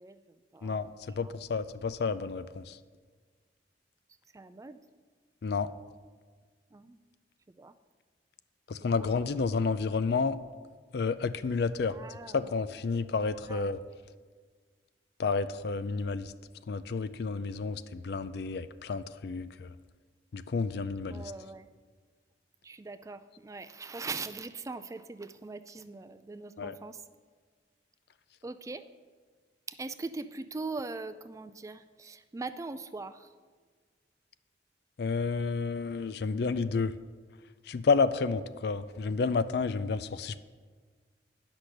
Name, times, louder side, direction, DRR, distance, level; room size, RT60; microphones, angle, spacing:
voice 1, 0.0-1.3 4.3-4.9 6.7-7.0 7.6-7.8 8.8-9.1 11.9-12.7 13.5-13.7 17.6-17.7 21.1-21.7 22.6-27.0 28.4-28.9 29.7-33.3, right 3 dB, 20° right, 11 dB, 0.3 m, -41 dB
voice 2, 1.2-2.8 5.4-5.7 8.7-10.4 10.9-12.0 12.3-13.8 15.2-16.3 16.7-19.7 20.3-21.3 26.6-26.7 35.0-36.9 37.7-40.4, left 4 dB, 65° left, 14 dB, 0.4 m, -30 dB
10.0 x 6.1 x 6.5 m, 1.5 s
head